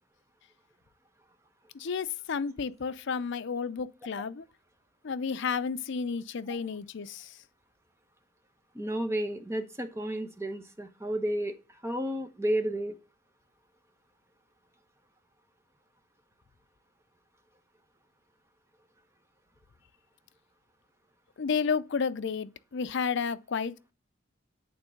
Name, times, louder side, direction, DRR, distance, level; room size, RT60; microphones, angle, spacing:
voice 1, 1.7-4.4 5.0-7.4 21.4-23.9, left 5 dB, 60° left, 0.5 m, -32 dB
voice 2, 8.7-12.9, right 1 dB, 15° right, 1.0 m, -32 dB
8.7 x 3.7 x 6.4 m
head